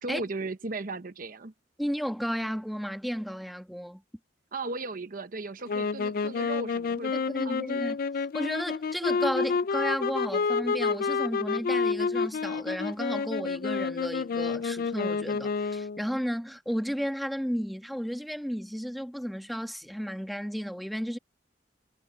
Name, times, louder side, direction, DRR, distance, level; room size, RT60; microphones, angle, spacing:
voice 1, 0.0-1.5 4.5-7.8, right 3 dB, 50° right, 0.9 m, -36 dB
voice 2, 1.8-4.0 7.3-8.0 8.3-21.2, equal, ahead, 1.4 m, -33 dB
sound 1, 5.7-16.1, left 5 dB, 50° left, 0.4 m, -29 dB
head